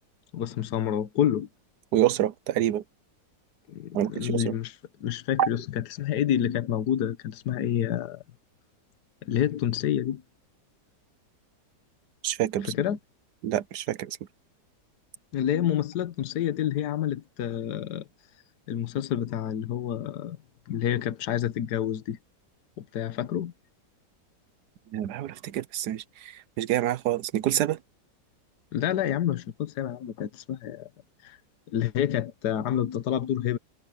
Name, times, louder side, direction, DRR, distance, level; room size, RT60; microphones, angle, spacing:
voice 1, 0.3-1.5 3.7-8.2 9.2-10.2 12.6-13.0 15.3-18.0 18.7-20.4 20.7-22.2 22.8-23.5 28.7-30.9 31.2-31.4 31.7-33.6, left 10 dB, 70° left, 1.5 m, -28 dB
voice 2, 1.9-2.8 3.9-4.5 5.4-5.5 12.2-12.7 13.4-14.2 24.9-27.8, right 12 dB, 70° right, 1.3 m, -27 dB
omnidirectional pair, 1.9 m